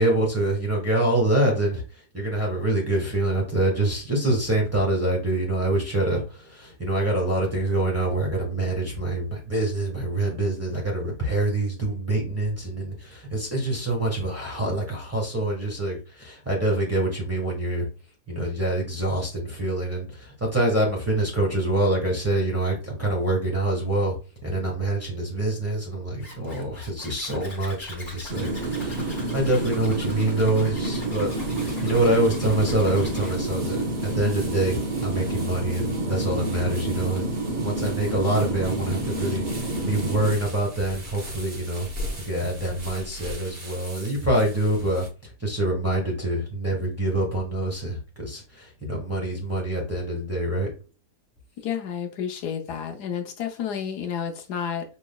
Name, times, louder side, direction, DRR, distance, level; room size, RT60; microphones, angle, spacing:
voice 1, 0.0-1.8 2.1-17.9 18.3-24.2 24.4-31.3 31.8-37.3 37.6-41.9 42.2-45.1 45.4-50.7, right 1 dB, 10° right, 1.2 m, -25 dB
Zipper (clothing), 26.2-33.3, left 1 dB, 35° left, 1.2 m, -43 dB
sound 1, 28.3-40.4, right 2 dB, 65° right, 0.4 m, -28 dB
sound 2, 31.3-45.1, equal, 35° right, 1.1 m, -41 dB
voice 2, 51.6-54.8, left 8 dB, 80° left, 1.3 m, -30 dB
5.4 x 3.1 x 2.2 m
omnidirectional pair, 1.7 m